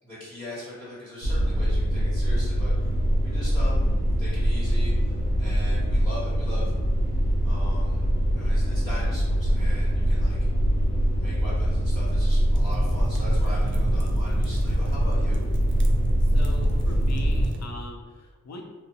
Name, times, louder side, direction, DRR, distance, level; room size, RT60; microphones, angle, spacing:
voice 1, 0.0-2.9 3.2-3.9 4.2-6.7 7.4-8.1 8.3-10.5 11.2-15.4, left 1 dB, 5° left, -11 dB, 1.1 m, -40 dB
sound 1, 1.2-17.5, equal, 75° left, 0.9 m, -23 dB
sound 2, 12.5-17.7, right 2 dB, 40° right, 0.4 m, -34 dB
voice 2, 16.2-18.6, left 2 dB, 55° left, 2 dB, 0.5 m, -41 dB
2.5 x 2.0 x 2.7 m, 1.2 s
cardioid pair, 40°, 33 cm